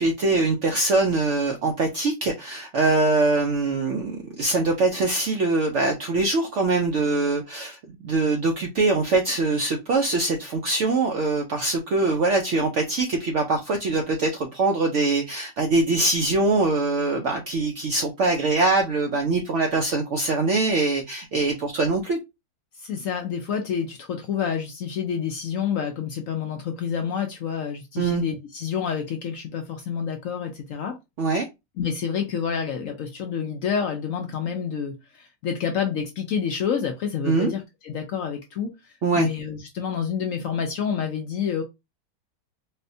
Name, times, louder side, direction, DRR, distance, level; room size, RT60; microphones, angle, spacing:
voice 1, 0.0-22.2 28.0-28.2 31.2-31.5 37.2-37.5 39.0-39.3, right 3 dB, 75° right, 0.6 m, -23 dB
voice 2, 22.7-31.0 31.8-41.6, left 7 dB, 70° left, 0.8 m, -28 dB
4.1 x 2.1 x 2.6 m
omnidirectional pair, 1.8 m